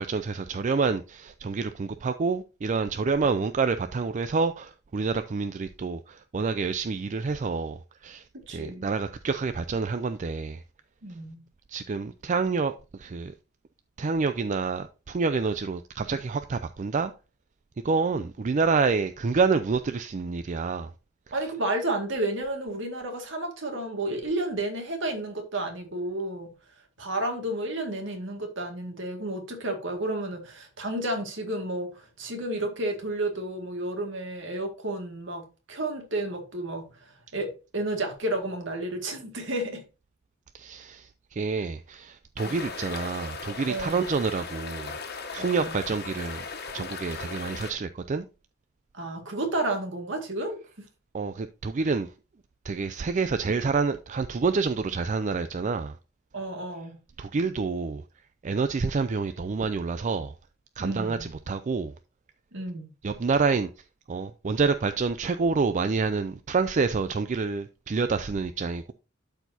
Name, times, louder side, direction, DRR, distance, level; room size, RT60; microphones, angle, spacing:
voice 1, 0.0-10.6 11.7-13.3 14.0-17.1 17.8-20.9 40.5-45.0 45.3-46.5 46.7-48.3 51.1-52.1 52.6-56.0 57.2-58.0 58.4-60.3 60.8-61.9 63.0-63.7 64.1-68.9, right 4 dB, 35° right, 0.4 m, -28 dB
voice 2, 8.3-8.9 11.0-11.5 21.3-26.5 27.0-39.8 42.4-42.5 43.7-44.1 45.4-45.8 48.9-50.6 56.3-57.0 60.8-61.3 62.5-62.9, right 1 dB, 65° right, 2.1 m, -31 dB
sound 1, 42.4-47.7, left 5 dB, 55° left, 1.4 m, -37 dB
12.0 x 4.6 x 2.7 m
head